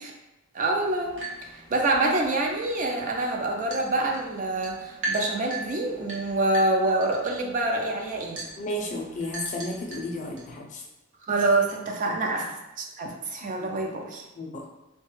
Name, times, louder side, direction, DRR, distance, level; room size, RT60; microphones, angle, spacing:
voice 1, 0.5-1.2 1.4-8.4 11.2-12.5 12.8-14.2, right 2 dB, 40° right, 2 dB, 0.4 m, -26 dB
sound 1, 0.8-10.5, right 2 dB, 60° right, 0.8 m, -40 dB
voice 2, 8.6-10.8 13.4-13.7 14.4-14.6, left 1 dB, 35° left, 0 dB, 0.5 m, -33 dB
3.1 x 2.2 x 3.1 m, 0.94 s
head